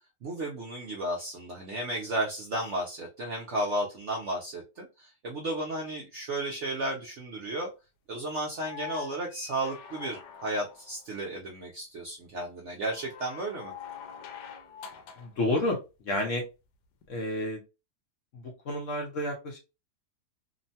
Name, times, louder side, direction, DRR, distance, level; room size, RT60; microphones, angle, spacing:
voice 1, 0.2-7.7 8.1-13.7, right 1 dB, 70° right, -1 dB, 0.7 m, -33 dB
sound 1, 8.5-11.0 12.9-15.4 17.0-17.1, left 8 dB, 80° left, 1.1 m, -45 dB
voice 2, 15.2-15.8 16.0-16.4 17.1-17.6 18.3-19.6, left 1 dB, 60° left, 0 dB, 0.8 m, -30 dB
2.9 x 2.1 x 2.6 m, 0.28 s
omnidirectional pair, 1.8 m